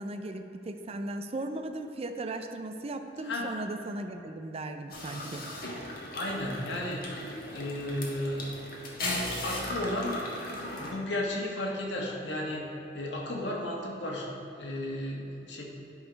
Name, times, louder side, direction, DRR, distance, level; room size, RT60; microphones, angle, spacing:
voice 1, 0.0-5.5, right 2 dB, 35° right, 7 dB, 0.5 m, -37 dB
sound 1, 4.9-10.9, left 1 dB, 55° left, 1.5 m, -37 dB
voice 2, 6.1-7.0 7.5-8.5 9.4-10.2 10.7-12.7 12.9-15.6, left 1 dB, 85° left, -2 dB, 1.4 m, -34 dB
10.5 x 4.1 x 5.2 m, 2.9 s
head